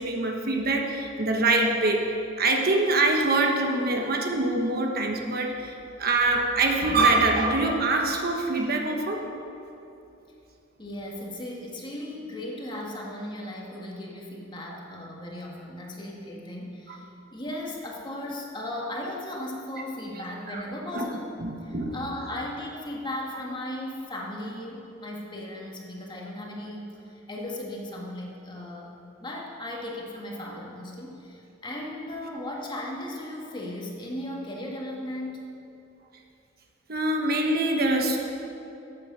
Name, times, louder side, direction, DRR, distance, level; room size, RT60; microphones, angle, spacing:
voice 1, 0.0-5.7 6.0-9.2 16.9-17.0 20.5-20.6 20.9-21.1 21.4-22.0 36.9-38.2, right 2 dB, 50° right, 2 dB, 1.2 m, -24 dB
voice 2, 10.8-21.3 21.6-28.9 29.2-35.5, left 1 dB, 25° left, -2 dB, 1.8 m, -36 dB
13.0 x 8.8 x 6.3 m, 2.8 s
head